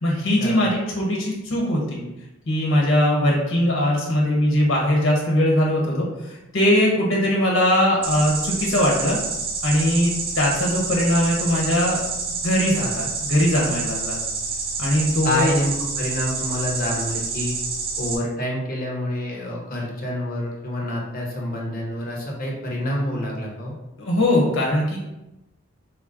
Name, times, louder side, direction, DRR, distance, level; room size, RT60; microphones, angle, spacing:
voice 1, 0.0-2.0 2.5-9.2 9.6-12.0 12.4-14.2 14.8-15.5 24.0-25.0, left 1 dB, 70° left, -2 dB, 1.3 m, -20 dB
sound 1, 8.0-18.1, right 4 dB, 45° right, 0.9 m, -28 dB
voice 2, 15.2-17.6 18.0-23.7, left 1 dB, 40° left, -2 dB, 0.9 m, -27 dB
5.2 x 2.3 x 3.8 m, 0.96 s
head